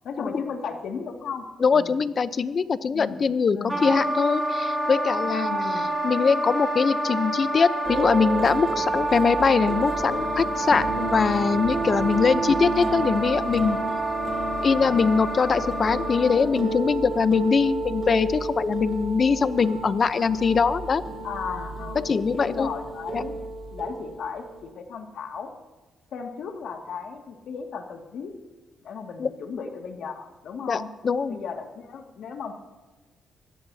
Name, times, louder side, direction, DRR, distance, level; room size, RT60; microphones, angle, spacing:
voice 1, 0.0-1.5 1.7-2.0 2.9-3.2 3.5-3.9 5.4-5.9 12.2-12.5 14.5-14.9 21.2-23.4 23.7-25.5 26.1-28.3 28.8-30.9 31.3-32.5, left 6 dB, 70° left, 3 dB, 2.2 m, -35 dB
voice 2, 1.6-5.5 6.0-13.8 14.6-21.0 22.0-22.7 23.1-23.2 29.2-29.3 30.7-31.4, left 5 dB, 45° left, 13 dB, 0.8 m, -22 dB
Wind instrument woodwind instrument, 3.7-16.6, right 2 dB, 10° right, 6.2 m, -28 dB
sound 1, 7.8-24.7, right 2 dB, 35° right, 3.9 m, -32 dB
24.5 x 17.0 x 2.8 m, 1.2 s
cardioid pair, 100°, 0 cm